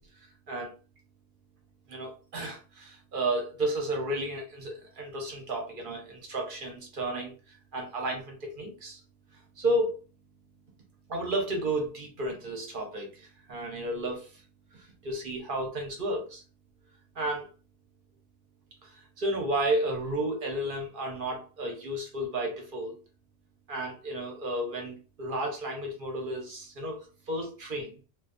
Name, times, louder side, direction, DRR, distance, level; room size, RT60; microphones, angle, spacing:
voice 1, 1.9-9.0 9.6-10.0 11.1-14.3 14.7-16.4 17.1-17.5 18.8-23.0 23.7-27.0 27.3-28.0, right 1 dB, 50° right, 1 dB, 0.9 m, -32 dB
2.5 x 2.5 x 2.5 m, 0.35 s
omnidirectional pair, 1.2 m